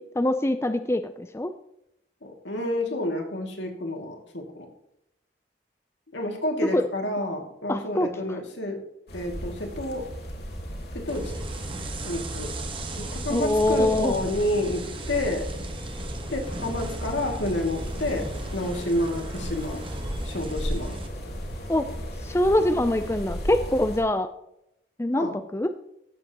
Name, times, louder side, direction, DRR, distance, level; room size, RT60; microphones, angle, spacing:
voice 1, 0.0-1.5 6.7-6.8 7.7-8.1 13.3-14.1 21.7-21.9 22.2-24.3 25.0-25.7, left 1 dB, 15° left, 9 dB, 0.5 m, -24 dB
voice 2, 2.2-4.7 6.1-8.8 9.1-10.1 10.9-11.4 12.0-12.5 13.0-14.8 15.1-15.4 16.3-18.3 18.5-19.8 20.3-20.9 25.2-25.3, left 1 dB, 75° left, 2 dB, 2.4 m, -29 dB
sound 1, 9.1-24.0, equal, 60° left, 2.5 m, -36 dB
sound 2, 11.1-21.1, right 2 dB, 30° right, 1.3 m, -37 dB
Train, 16.6-22.9, equal, 55° right, 3.7 m, -43 dB
16.0 x 7.6 x 3.0 m, 0.80 s
head